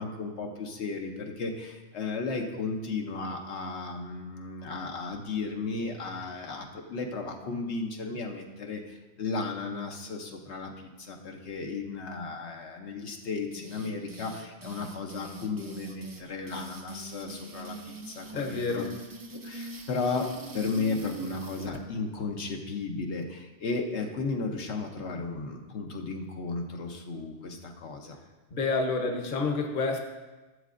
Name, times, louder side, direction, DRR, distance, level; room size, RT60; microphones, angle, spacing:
voice 1, 0.0-18.9 19.4-28.2, left 4 dB, 80° left, 2 dB, 1.1 m, -34 dB
sound 1, 13.5-21.8, right 3 dB, 25° right, 0.4 m, -43 dB
voice 2, 18.3-18.9 28.5-30.0, left 3 dB, 50° left, 3 dB, 1.0 m, -28 dB
14.5 x 7.4 x 2.5 m, 1.2 s
omnidirectional pair, 1.1 m